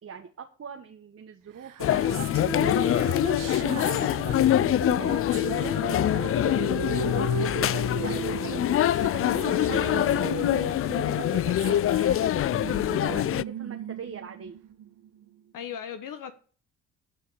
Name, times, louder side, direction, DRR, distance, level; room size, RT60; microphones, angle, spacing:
voice 1, 0.0-14.6, right 7 dB, 40° right, 1.5 m, -42 dB
sound 1, 1.6-15.3, right 9 dB, 55° right, 1.1 m, -36 dB
sound 2, 1.8-13.4, left 12 dB, 40° left, 0.4 m, -25 dB
voice 2, 15.5-16.3, left 8 dB, 55° left, 1.2 m, -38 dB
11.0 x 5.6 x 7.0 m
hypercardioid pair, 55°, 38 cm